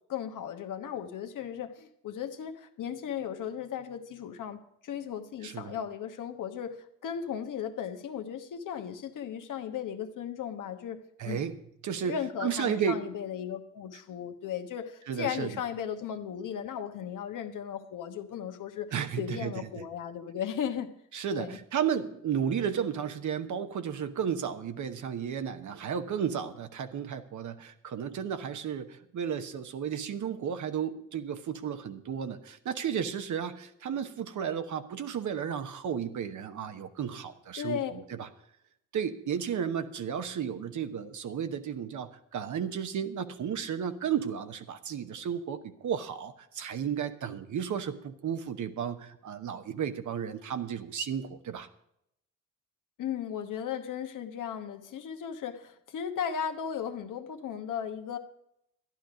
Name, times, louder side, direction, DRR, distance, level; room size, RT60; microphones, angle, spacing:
voice 1, 0.1-11.4 12.0-20.9 21.3-21.6 37.6-38.0 53.0-58.2, left 8 dB, 80° left, 7 dB, 1.2 m, -36 dB
voice 2, 5.4-5.8 11.2-11.6 11.8-12.2 12.4-13.0 15.1-15.6 18.9-19.8 21.1-37.8 38.1-38.3 38.9-51.7, right 8 dB, 70° right, 8 dB, 1.1 m, -33 dB
12.5 x 10.5 x 5.0 m, 0.77 s
cardioid pair, 75°, 31 cm